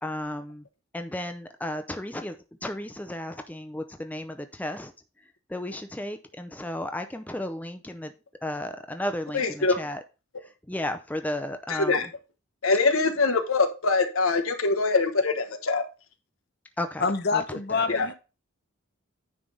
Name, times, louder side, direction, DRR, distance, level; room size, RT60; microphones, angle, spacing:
voice 1, 0.0-0.6 0.9-4.9 5.2-8.1 8.4-10.0 10.4-12.0 16.8-17.0 17.3-17.4 17.7-18.1, left 1 dB, 5° left, 7 dB, 0.5 m, -34 dB
voice 2, 9.3-9.8 11.7-12.1 12.6-15.8 17.9-18.1, left 3 dB, 85° left, 7 dB, 1.1 m, -23 dB
voice 3, 17.0-18.1, left 4 dB, 50° left, 9 dB, 0.7 m, -26 dB
9.5 x 3.4 x 5.3 m, 0.31 s
head